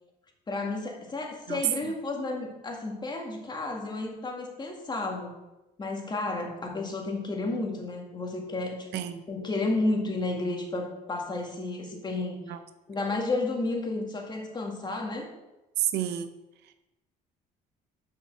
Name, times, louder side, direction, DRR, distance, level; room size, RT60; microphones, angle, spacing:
voice 1, 0.5-5.3 5.8-12.5 12.9-15.3, left 2 dB, 25° left, 1 dB, 1.9 m, -32 dB
voice 2, 8.9-9.2 12.5-12.6 15.8-16.3, right 11 dB, 80° right, 10 dB, 0.7 m, -30 dB
6.7 x 5.6 x 6.5 m, 0.98 s
cardioid pair, 110°, 17 cm